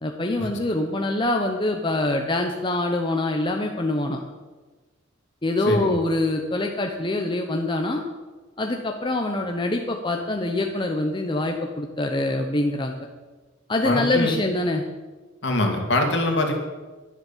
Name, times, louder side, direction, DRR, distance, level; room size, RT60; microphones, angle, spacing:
voice 1, 0.0-4.2 5.4-8.0 8.6-13.0 13.7-14.8, left 2 dB, 25° left, 3 dB, 0.9 m, -24 dB
voice 2, 5.7-6.0 13.8-14.3 15.4-16.5, left 1 dB, 60° left, 3 dB, 2.4 m, -23 dB
11.0 x 11.0 x 7.3 m, 1.3 s
head